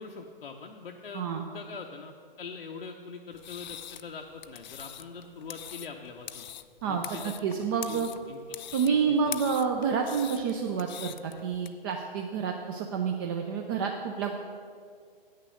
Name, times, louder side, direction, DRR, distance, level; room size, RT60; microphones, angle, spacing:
voice 1, 0.0-2.1 2.4-6.5 6.8-7.3 7.9-8.6 8.9-9.4, left 5 dB, 75° left, 2 dB, 0.8 m, -43 dB
sound 1, 3.3-11.7, left 10 dB, 50° left, 0.4 m, -43 dB
voice 2, 6.8-8.1 8.7-14.3, right 6 dB, 25° right, 3 dB, 0.4 m, -29 dB
9.0 x 6.6 x 6.3 m, 2.1 s
figure-of-eight pair, 125°, 29 cm